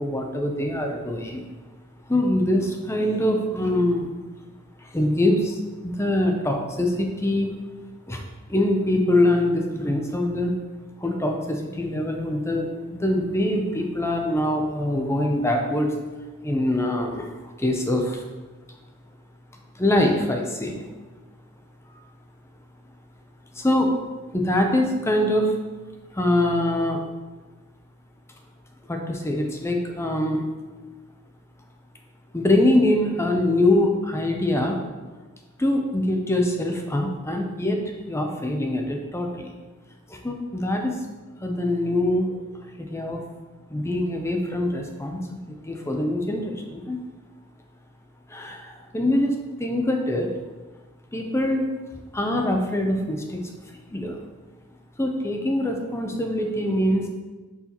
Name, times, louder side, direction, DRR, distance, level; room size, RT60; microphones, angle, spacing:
voice 1, 0.0-1.4 2.1-4.1 4.8-7.5 8.1-8.2 8.5-10.5 11.0-15.9 16.4-18.2 19.8-20.9 23.6-23.9 24.3-25.6 26.1-27.0 28.9-30.5 32.3-34.8 35.6-37.8 38.1-39.5 40.1-40.9 41.4-42.4 42.8-43.2 43.7-45.2 45.5-47.0 48.3-50.3 51.1-51.7 52.1-53.4 53.9-54.2 55.0-57.1, left 1 dB, 15° left, 3 dB, 0.5 m, -24 dB
6.8 x 4.7 x 2.9 m, 1.2 s
head